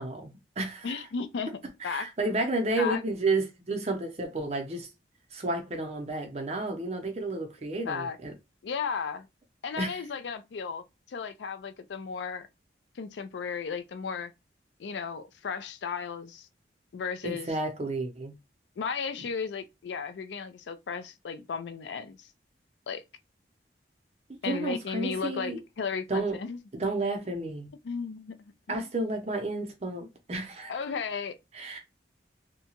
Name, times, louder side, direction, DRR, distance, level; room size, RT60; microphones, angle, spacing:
voice 1, 0.0-1.0 1.8-4.9 5.3-8.3 9.8-10.0 17.2-18.3 24.3-25.6 26.1-26.4 26.8-27.7 28.7-30.7 31.5-31.8, right 2 dB, 35° right, 0.6 m, -31 dB
voice 2, 0.8-1.5 1.8-2.1 2.8-3.0 7.8-8.2 8.6-9.3 9.6-12.5 13.0-14.3 14.8-16.5 16.9-17.5 18.8-22.3 22.9-23.0 24.4-26.6 27.8-28.9 30.7-31.4, left 5 dB, 80° left, 0.4 m, -35 dB
2.7 x 2.2 x 2.8 m
head